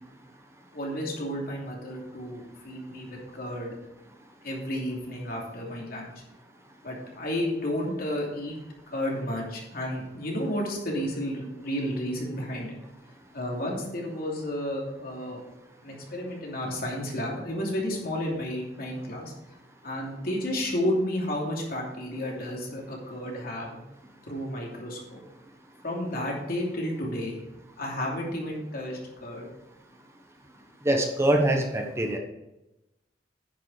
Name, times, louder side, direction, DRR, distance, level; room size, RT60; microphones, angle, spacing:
voice 1, 0.7-3.7 4.4-6.1 6.8-8.5 8.9-12.8 13.3-15.4 15.8-19.3 19.8-23.8 24.3-25.2 25.8-27.4 27.8-29.5, left 1 dB, 60° left, -2 dB, 2.9 m, -32 dB
voice 2, 30.8-32.2, right 1 dB, 15° right, 3 dB, 1.0 m, -24 dB
10.0 x 6.9 x 4.9 m, 0.95 s
head